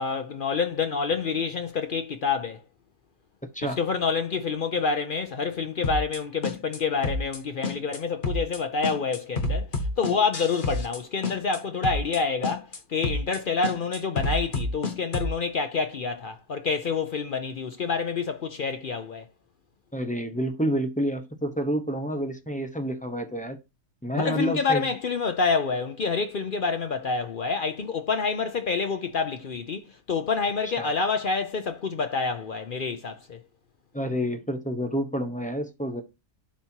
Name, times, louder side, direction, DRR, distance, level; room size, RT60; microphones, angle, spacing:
voice 1, 0.0-2.6 3.6-19.3 24.1-33.4, left 5 dB, 65° left, 0.5 m, -28 dB
sound 1, 5.8-6.2 6.4-6.8 7.0-7.4 7.6-8.6 8.8-11.0 11.2-11.6 11.8-12.2 12.4-12.8 13.0-13.4 13.6-15.3, left 2 dB, 35° left, 1.2 m, -28 dB
voice 2, 19.9-23.6 24.0-24.8 30.8-30.9 33.9-36.0, equal, 5° left, 0.8 m, -29 dB
11.5 x 4.4 x 2.8 m
omnidirectional pair, 1.7 m